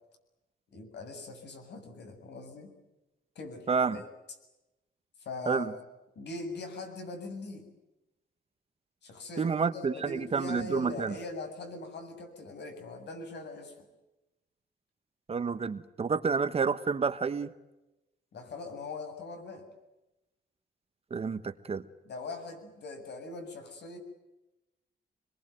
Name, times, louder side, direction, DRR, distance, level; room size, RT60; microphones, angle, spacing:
voice 1, 0.7-2.7 3.4-4.0 5.2-5.8 6.2-7.7 9.0-13.8 18.3-19.7 22.0-24.0, left 3 dB, 70° left, 6 dB, 7.5 m, -41 dB
voice 2, 3.7-4.0 5.5-5.7 9.4-11.1 15.3-17.5 21.1-21.8, right 5 dB, 35° right, 12 dB, 1.2 m, -29 dB
27.0 x 22.0 x 9.3 m, 0.99 s
wide cardioid pair, 175°, 18 cm